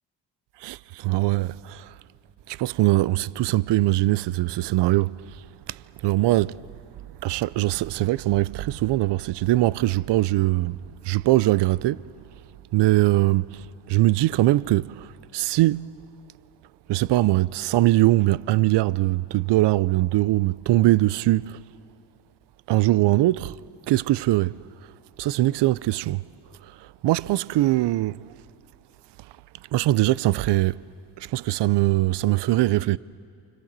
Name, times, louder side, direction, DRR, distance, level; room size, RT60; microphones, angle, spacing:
voice 1, 0.6-1.9 2.5-5.4 5.7-6.7 7.2-10.8 11.0-12.1 12.7-16.0 16.9-21.6 22.7-23.6 23.9-24.6 25.2-26.2 27.0-28.3 29.7-30.8 31.2-33.0, right 17 dB, 55° right, 0.6 m, -22 dB
29.0 x 26.0 x 7.5 m
supercardioid pair, 60°, 50 cm